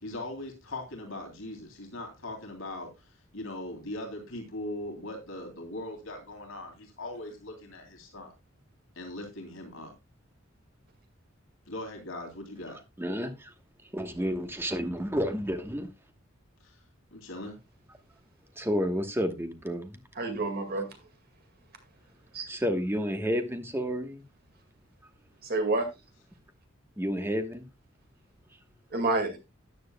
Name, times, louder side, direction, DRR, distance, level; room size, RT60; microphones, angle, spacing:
voice 1, 0.0-2.9 3.3-8.3 9.0-9.9 11.7-12.8 16.6-16.8 17.1-17.6, left 1 dB, 75° left, 2.8 m, -40 dB
voice 2, 13.0-13.5 13.9-15.9 18.6-19.9 22.5-24.2 27.0-27.6, equal, 10° right, 1.2 m, -30 dB
voice 3, 20.2-20.9 22.3-22.5 25.4-25.9 28.9-29.4, right 2 dB, 50° right, 2.1 m, -28 dB
13.5 x 9.5 x 2.3 m
head